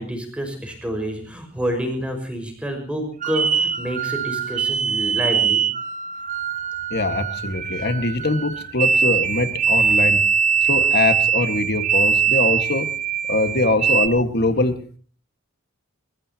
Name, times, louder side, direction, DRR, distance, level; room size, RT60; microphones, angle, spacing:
voice 1, 0.0-5.6, equal, 5° right, 4 dB, 5.6 m, -28 dB
sound 1, 3.2-14.1, right 6 dB, 40° right, 1.1 m, -22 dB
voice 2, 6.9-10.2 10.6-12.9 13.3-14.8, left 2 dB, 50° left, 9 dB, 1.8 m, -22 dB
29.5 x 15.5 x 2.9 m, 0.41 s
head